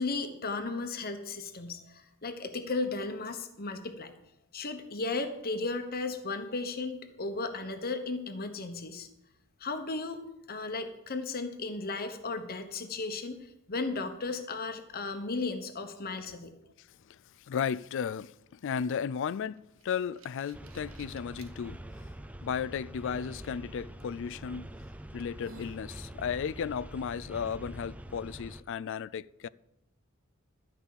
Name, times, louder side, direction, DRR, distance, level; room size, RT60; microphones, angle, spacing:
voice 1, 0.0-4.1 4.5-9.1 9.6-16.5, left 3 dB, 45° left, 1.1 m, -35 dB
voice 2, 16.8-22.1 22.4-24.7 25.1-29.5, left 7 dB, 65° left, 0.4 m, -35 dB
sound 1, 19.4-21.5 22.2-22.3 24.0-24.2 24.7-24.8 25.2-25.9, right 3 dB, 70° right, 0.9 m, -54 dB
sound 2, 20.5-28.6, right 1 dB, 5° right, 0.5 m, -45 dB
13.0 x 5.4 x 8.3 m
head